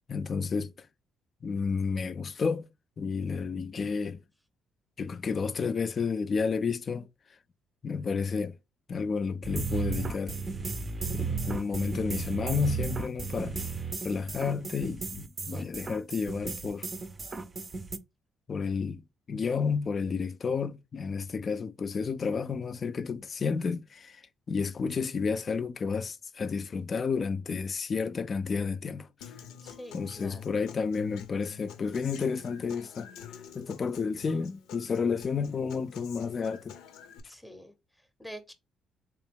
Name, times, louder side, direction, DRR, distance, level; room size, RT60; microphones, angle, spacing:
voice 1, 0.1-0.9 1.4-2.7 3.0-4.2 5.0-7.1 7.8-8.6 8.9-10.4 11.1-13.6 14.0-16.9 18.5-19.0 19.3-24.2 24.5-29.3 29.9-36.8, left 5 dB, 40° left, 0.4 m, -31 dB
sound 1, 9.4-18.0, right 4 dB, 30° right, 0.5 m, -34 dB
Human voice / Acoustic guitar, 29.2-37.2, left 9 dB, 90° left, 0.6 m, -47 dB
voice 2, 29.6-30.6 37.3-38.5, equal, 5° left, 0.7 m, -47 dB
3.5 x 3.0 x 3.5 m
cardioid pair, 90°, 0 cm